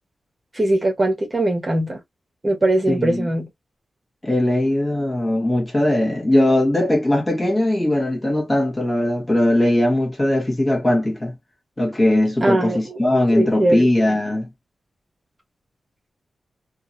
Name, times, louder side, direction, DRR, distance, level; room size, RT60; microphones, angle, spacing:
voice 1, 0.5-2.0 2.4-3.5 12.4-13.0 13.3-13.8, right 1 dB, 25° right, 1.1 m, -20 dB
voice 2, 2.9-3.3 4.2-11.3 11.8-14.5, left 1 dB, 20° left, 1.3 m, -19 dB
2.8 x 2.6 x 2.6 m
wide cardioid pair, 140°, 0 cm